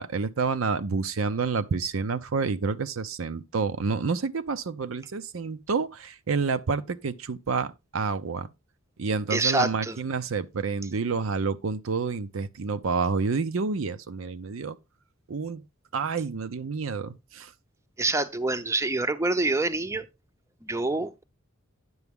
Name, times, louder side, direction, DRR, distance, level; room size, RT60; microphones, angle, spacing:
voice 1, 0.0-8.5 9.0-14.8 15.3-15.6 15.9-17.5, right 4 dB, 70° right, 0.6 m, -29 dB
voice 2, 9.3-10.0 18.0-20.1 20.6-21.2, right 2 dB, 15° right, 0.6 m, -26 dB
9.5 x 6.9 x 3.5 m
head